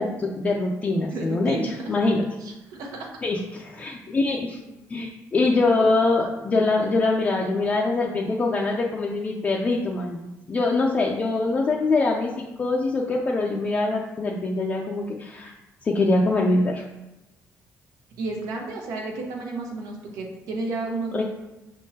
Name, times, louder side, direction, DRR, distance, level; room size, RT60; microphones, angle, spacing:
voice 1, 0.0-1.6 1.9-2.3 3.2-4.6 4.9-15.5 15.8-16.8 21.1-21.2, left 3 dB, 25° left, -2 dB, 0.4 m, -23 dB
voice 2, 1.1-1.9 2.4-3.1 4.7-4.8 18.2-21.2, right 3 dB, 90° right, 1 dB, 0.9 m, -32 dB
5.4 x 3.6 x 2.7 m, 0.99 s
cardioid pair, 150°, 6 cm